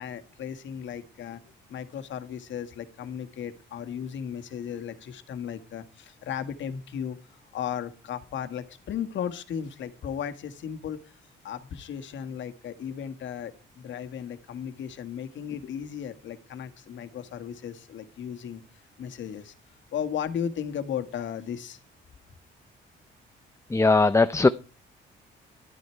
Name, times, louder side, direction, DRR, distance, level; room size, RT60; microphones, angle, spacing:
voice 1, 0.0-18.6 19.0-19.5 19.9-21.8, left 8 dB, 70° left, 8 dB, 1.7 m, -35 dB
voice 2, 23.7-24.5, left 3 dB, 15° left, 12 dB, 0.6 m, -19 dB
12.0 x 9.6 x 4.5 m, 0.31 s
cardioid pair, 90°, 20 cm